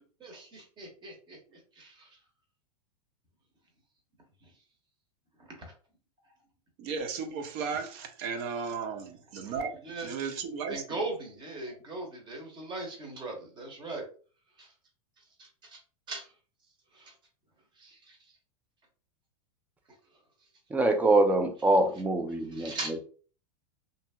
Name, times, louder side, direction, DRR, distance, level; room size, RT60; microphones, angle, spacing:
voice 1, 0.2-1.4 1.8-2.1 9.8-10.1 10.7-14.0 14.6-14.7 15.7-15.8 16.1-16.3 17.0-17.1 17.8-18.2 22.5-23.0, right 2 dB, 25° right, 1.0 m, -39 dB
voice 2, 6.8-11.0 11.7-11.8, right 5 dB, 50° right, 0.6 m, -35 dB
voice 3, 20.7-22.7, right 2 dB, 10° right, 0.3 m, -24 dB
2.7 x 2.7 x 2.2 m
supercardioid pair, 130°, 20 cm